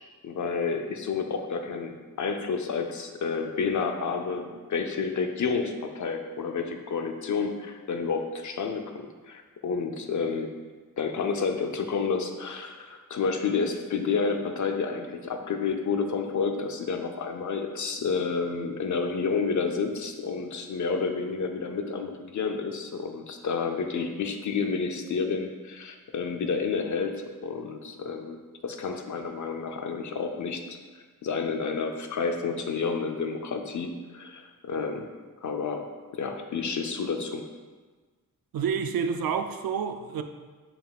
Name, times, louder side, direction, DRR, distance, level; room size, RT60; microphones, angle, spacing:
voice 1, 0.2-10.5 11.0-30.8 31.2-35.1 35.4-35.8 36.1-37.4, left 5 dB, 55° left, 4 dB, 0.6 m, -30 dB
voice 2, 38.5-40.2, right 6 dB, 85° right, 7 dB, 0.5 m, -28 dB
7.2 x 5.5 x 2.4 m, 1.4 s
wide cardioid pair, 105°, 34 cm